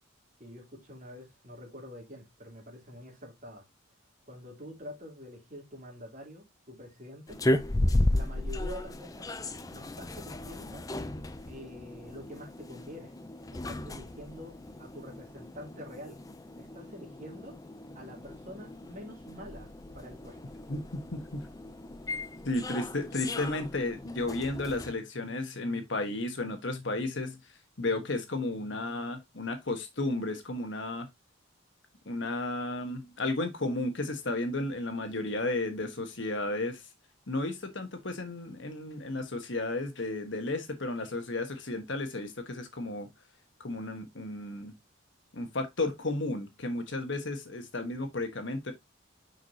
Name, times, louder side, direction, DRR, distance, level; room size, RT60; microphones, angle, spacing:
voice 1, 0.4-3.6 4.3-7.4 8.1-9.3 9.6-10.8 11.5-13.1 13.5-16.2 16.6-17.6 17.9-19.7 19.9-20.4, equal, 40° right, 3.2 m, -46 dB
sound 1, 7.3-24.9, left 1 dB, 15° left, 0.5 m, -35 dB
voice 2, 20.7-21.4 22.4-27.4 27.8-31.1 32.1-36.8 37.3-43.1 43.6-44.7 45.3-48.7, left 2 dB, 60° left, 1.3 m, -33 dB
6.3 x 5.6 x 2.8 m
head